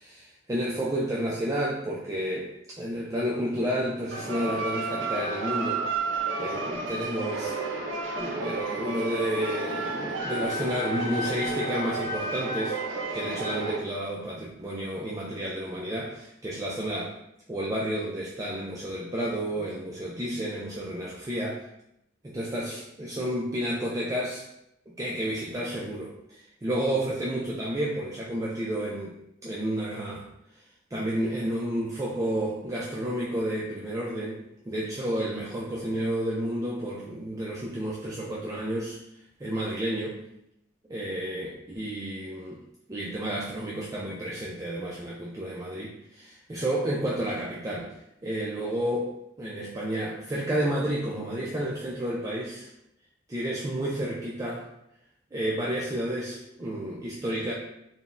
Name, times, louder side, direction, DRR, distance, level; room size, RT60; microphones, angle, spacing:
voice 1, 0.0-5.8 6.4-7.6 8.2-12.8 13.1-17.2 17.5-21.6 22.2-24.4 24.9-30.2 30.9-39.0 39.4-40.2 40.9-42.6 42.9-47.9 48.2-49.1 49.4-52.7 53.3-54.7 55.3-57.5, right 1 dB, 15° right, -5 dB, 0.3 m, -31 dB
sound 1, 4.1-13.8, right 3 dB, 85° right, 0.5 m, -31 dB
3.8 x 2.1 x 2.5 m, 0.81 s
head